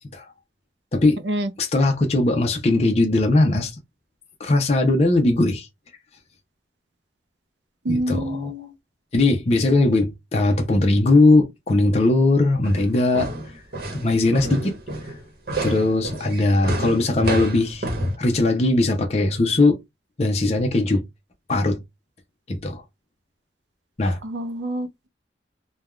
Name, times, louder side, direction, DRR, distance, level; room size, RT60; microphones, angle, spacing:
voice 1, 1.6-3.7 4.4-5.7 7.9-8.5 9.1-13.3 13.9-14.7 15.1-15.2 15.6-17.9 18.2-19.8 20.2-21.0 21.5-21.8 22.5-22.8 24.0-24.2, left 2 dB, 35° left, 0.5 m, -19 dB
voice 2, 7.9-8.7 24.2-25.1, right 1 dB, 80° right, 0.5 m, -27 dB
sound 1, 12.6-18.2, right 1 dB, 55° right, 1.0 m, -28 dB
3.3 x 2.2 x 2.3 m
head